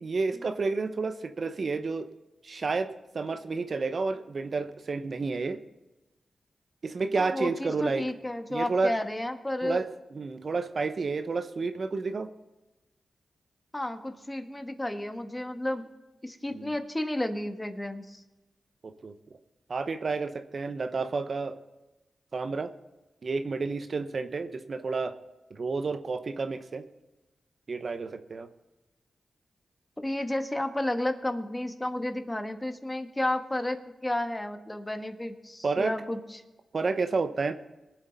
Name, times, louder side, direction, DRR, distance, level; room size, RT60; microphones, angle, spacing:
voice 1, 0.0-2.1 2.4-5.6 6.8-8.1 8.5-8.9 9.6-9.9 10.1-12.3 16.5-16.7 19.0-19.1 19.7-21.6 22.3-22.7 23.2-25.1 25.5-26.8 27.7-28.5 35.6-35.9 36.7-37.5, right 4 dB, 60° right, 9 dB, 0.8 m, -30 dB
voice 2, 7.2-9.8 13.7-15.9 16.2-18.2 30.0-36.4, left 1 dB, 15° left, 7 dB, 1.3 m, -32 dB
21.5 x 7.8 x 4.0 m, 1.1 s
cardioid pair, 55°, 0 cm